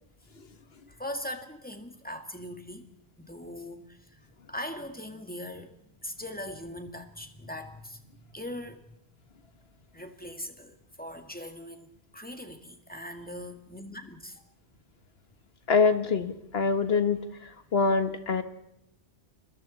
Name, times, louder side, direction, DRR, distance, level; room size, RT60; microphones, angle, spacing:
voice 1, 0.9-2.9 3.2-9.0 9.9-14.4, left 1 dB, 10° left, 6 dB, 2.0 m, -41 dB
voice 2, 15.7-18.4, left 4 dB, 65° left, 10 dB, 1.7 m, -25 dB
30.0 x 22.5 x 4.2 m, 0.82 s
omnidirectional pair, 1.1 m